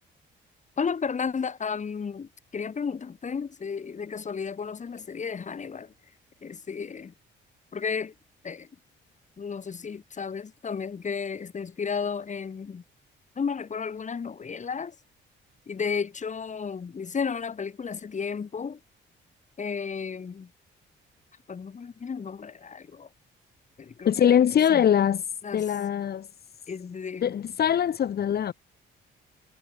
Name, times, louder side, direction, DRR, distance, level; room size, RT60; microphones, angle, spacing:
voice 1, 0.8-5.9 6.4-7.1 7.7-8.1 8.4-8.7 9.4-12.8 13.4-15.0 15.7-18.8 19.6-20.5 21.5-23.1 23.8-24.9 25.4-25.8 26.7-27.4, left 6 dB, 40° left, 2.4 m, -33 dB
voice 2, 24.0-25.2 25.5-26.3 27.2-28.5, left 9 dB, 55° left, 1.3 m, -22 dB
cardioid pair, 90°, 20 cm